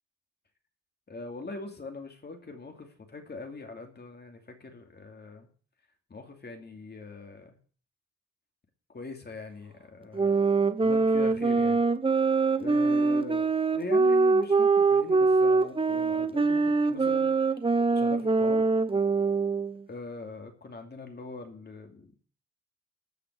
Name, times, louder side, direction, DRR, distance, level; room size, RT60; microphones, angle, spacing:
voice 1, 1.1-5.5 6.1-7.5 8.9-10.3 10.8-11.8 12.6-17.3 17.9-18.7 19.9-22.3, left 3 dB, 35° left, 3 dB, 2.7 m, -41 dB
sound 1, 10.1-19.8, right 4 dB, 20° right, 0.9 m, -24 dB
13.5 x 6.0 x 9.5 m, 0.43 s
wide cardioid pair, 135°, 29 cm